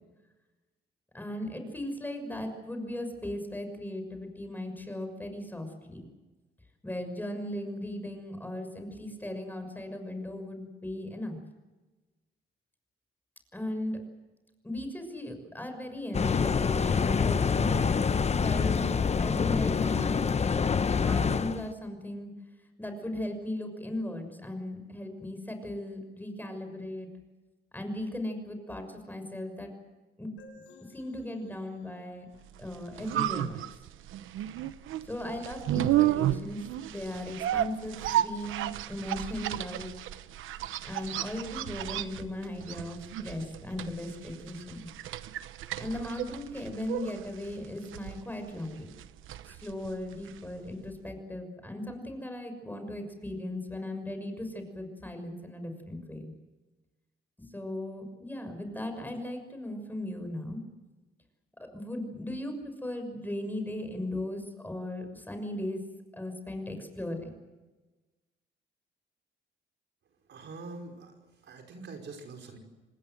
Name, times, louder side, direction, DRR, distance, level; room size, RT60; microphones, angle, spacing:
voice 1, 1.1-6.0 6.8-11.4 13.5-14.0 14.6-17.9 18.3-20.5 21.0-22.3 22.6-27.1 27.7-29.7 30.2-30.6 30.9-32.3 32.6-33.7 35.0-36.6 36.9-39.9 40.8-44.9 45.8-48.9 49.5-56.3 57.4-60.6 61.7-65.8 66.1-67.3, left 1 dB, 10° left, 7 dB, 6.3 m, -37 dB
sound 1, 16.1-21.7, left 6 dB, 35° left, 1.0 m, -26 dB
sound 2, 30.4-33.9, left 3 dB, 80° left, 5.4 m, -58 dB
sound 3, 32.6-50.6 50.9-51.0, right 13 dB, 85° right, 1.0 m, -33 dB
voice 2, 70.3-71.1 71.4-72.6, right 3 dB, 65° right, 3 dB, 5.2 m, -44 dB
26.5 x 20.0 x 7.9 m, 1.2 s
cardioid pair, 90°, 20 cm